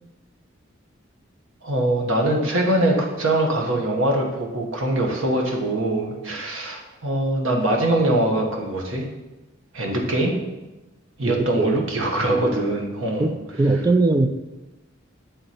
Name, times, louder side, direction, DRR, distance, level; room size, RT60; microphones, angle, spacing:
voice 1, 1.6-9.1 9.7-10.3 11.2-13.3, right 1 dB, 85° right, 1 dB, 1.2 m, -23 dB
voice 2, 11.2-11.8 12.2-12.7 13.2-14.3, right 2 dB, 20° right, 9 dB, 0.3 m, -22 dB
7.8 x 3.9 x 4.2 m, 1.1 s
head